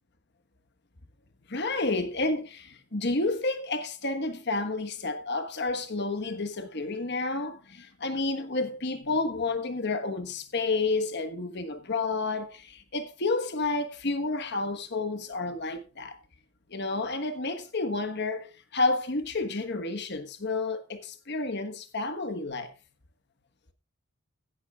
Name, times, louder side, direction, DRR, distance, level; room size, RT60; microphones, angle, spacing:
voice 1, 1.5-16.2 16.7-22.7, left 3 dB, 50° left, 1.3 m, -30 dB
16.5 x 10.5 x 2.4 m
head